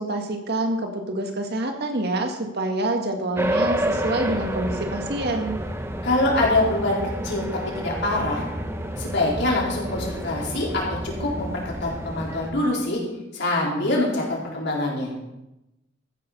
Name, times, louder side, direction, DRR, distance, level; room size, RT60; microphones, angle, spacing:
voice 1, 0.0-5.6, right 2 dB, 55° right, 4 dB, 1.8 m, -27 dB
sound 1, 3.4-12.5, right 1 dB, 15° right, 1.0 m, -29 dB
voice 2, 6.0-7.0 7.2-7.4 7.8-8.4 9.0-13.0 13.3-15.1, left 2 dB, 60° left, -3 dB, 4.2 m, -24 dB
14.5 x 6.7 x 6.8 m, 0.93 s
head